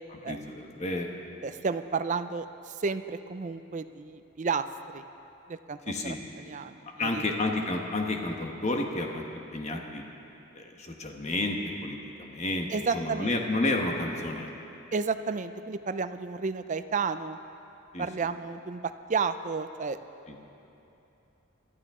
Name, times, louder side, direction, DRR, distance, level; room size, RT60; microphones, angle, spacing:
voice 1, 0.1-1.1 5.9-6.2 7.0-9.2 9.5-10.0 10.5-14.5 17.9-18.1 20.3-20.4, left 2 dB, 30° left, 2 dB, 1.2 m, -31 dB
voice 2, 1.4-5.1 5.5-5.8 6.0-7.3 12.7-13.7 14.9-17.4 18.0-20.0, right 5 dB, 35° right, 11 dB, 0.4 m, -32 dB
22.5 x 13.0 x 3.7 m, 2.9 s
head